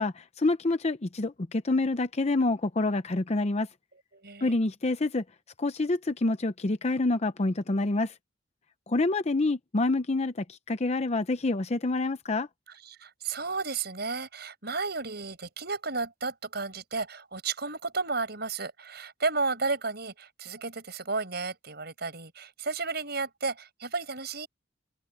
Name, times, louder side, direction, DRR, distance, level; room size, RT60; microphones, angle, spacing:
voice 1, 0.0-3.7 4.4-5.2 5.6-8.1 8.9-12.5, left 2 dB, 35° left, 0.7 m, -27 dB
voice 2, 4.1-4.5 12.7-24.5, right 4 dB, 60° right, 6.9 m, -33 dB
head